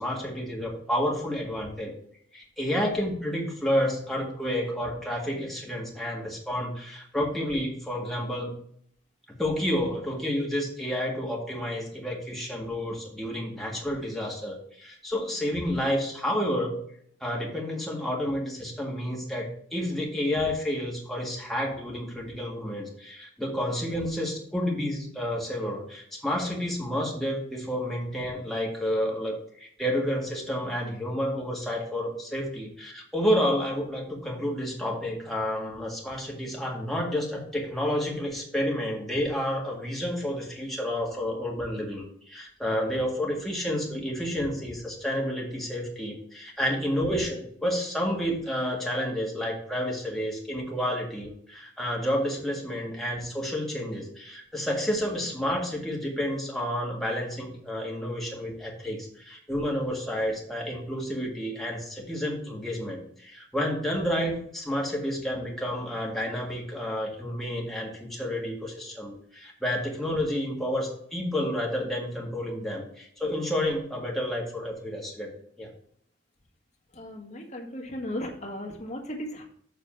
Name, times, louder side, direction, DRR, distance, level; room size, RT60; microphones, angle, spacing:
voice 1, 0.0-1.9 2.3-8.5 9.4-16.8 17.2-75.3 75.6-75.7, equal, ahead, -2 dB, 1.7 m, -30 dB
voice 2, 76.9-79.4, left 1 dB, 40° left, 1 dB, 1.7 m, -36 dB
7.3 x 4.1 x 5.8 m, 0.66 s
head